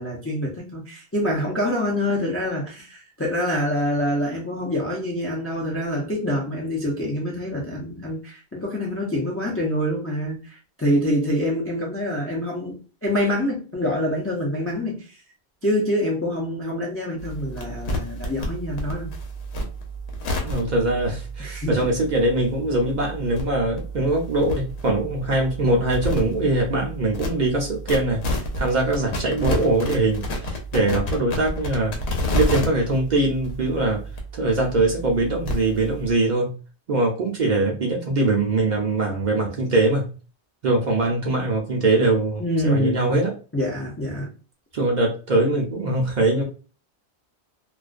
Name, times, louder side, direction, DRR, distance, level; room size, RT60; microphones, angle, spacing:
voice 1, 0.0-15.0 15.6-19.1 21.4-21.7 42.4-43.2 43.5-44.3, left 1 dB, 25° left, -3 dB, 0.3 m, -26 dB
sound 1, 17.2-36.1, equal, 80° left, 0.9 m, -31 dB
voice 2, 20.4-31.9 32.3-34.0 34.3-36.5 36.9-40.1 40.6-43.3 44.7-46.4, right 2 dB, 55° right, -1 dB, 0.6 m, -22 dB
2.4 x 2.1 x 2.4 m, 0.36 s
omnidirectional pair, 1.1 m